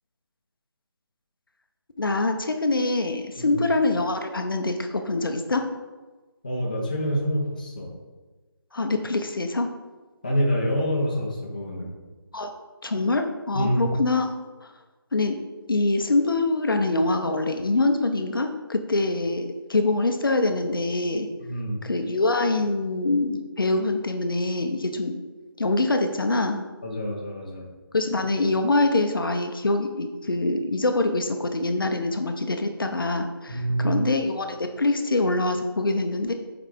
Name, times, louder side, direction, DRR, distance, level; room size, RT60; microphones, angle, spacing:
voice 1, 2.0-5.7 8.7-9.7 12.3-12.5 12.8-14.3 14.6-14.7 15.1-15.4 15.7-21.3 21.8-25.2 25.6-26.6 27.9-36.3, left 2 dB, 60° left, 6 dB, 0.7 m, -24 dB
voice 2, 6.4-7.9 10.2-11.9 13.5-13.9 21.4-21.8 26.8-27.7 33.5-34.0, equal, 20° left, -3 dB, 0.8 m, -26 dB
5.6 x 4.8 x 5.0 m, 1.3 s
figure-of-eight pair, 175°, 13 cm